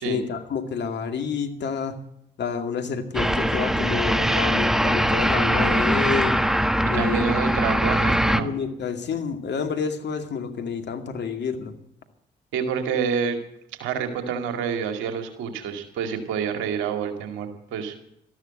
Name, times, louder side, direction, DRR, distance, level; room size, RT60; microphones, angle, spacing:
voice 1, 0.0-2.0 2.4-6.4 6.9-7.3 8.4-11.7, left 6 dB, 60° left, 6 dB, 2.3 m, -29 dB
sound 1, 3.1-8.4, equal, ahead, 1.3 m, -22 dB
voice 2, 6.9-8.5 12.5-13.4 13.8-17.9, right 7 dB, 80° right, 6 dB, 2.2 m, -28 dB
13.5 x 12.0 x 7.9 m, 0.75 s
hypercardioid pair, 45°, 20 cm